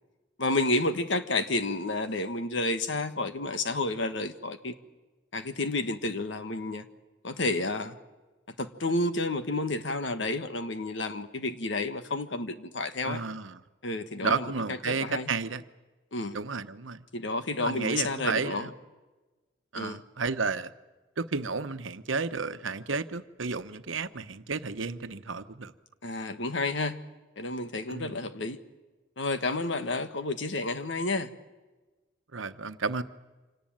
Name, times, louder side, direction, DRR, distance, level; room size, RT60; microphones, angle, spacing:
voice 1, 0.4-4.7 5.3-6.9 7.2-8.0 8.6-13.2 13.8-15.3 16.1-16.4 17.1-18.7 19.7-20.0 26.0-27.0 27.4-28.6 29.2-31.3, left 2 dB, 70° left, 10 dB, 1.5 m, -30 dB
voice 2, 13.0-13.6 14.2-15.6 16.3-17.1 17.6-18.7 19.7-20.7 21.2-25.7 27.9-28.1 32.3-33.0, right 4 dB, 85° right, 10 dB, 1.1 m, -32 dB
26.0 x 18.5 x 8.8 m, 1.2 s
head